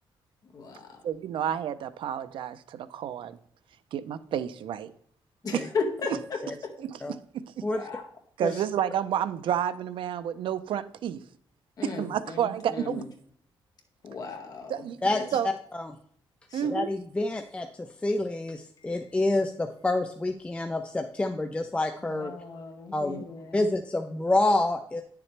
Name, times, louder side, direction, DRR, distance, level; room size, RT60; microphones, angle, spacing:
voice 1, 0.5-1.0 5.4-6.7 7.7-8.0 11.8-12.4 12.7-13.0 14.0-14.8 15.1-15.2 16.5-16.7 22.0-23.7, left 4 dB, 45° left, 2 dB, 1.9 m, -35 dB
voice 2, 1.0-3.4 3.9-4.9 5.5-5.7 6.8-7.6 8.4-11.2 11.8-13.0 14.7-15.0 15.3-15.5 16.5-16.9, right 9 dB, 75° right, 13 dB, 0.6 m, -30 dB
voice 3, 15.0-15.9 16.7-17.7 18.0-22.3 22.9-23.2 23.5-25.0, left 2 dB, 15° left, 5 dB, 0.5 m, -28 dB
10.0 x 6.9 x 3.3 m, 0.64 s
cardioid pair, 155°, 9 cm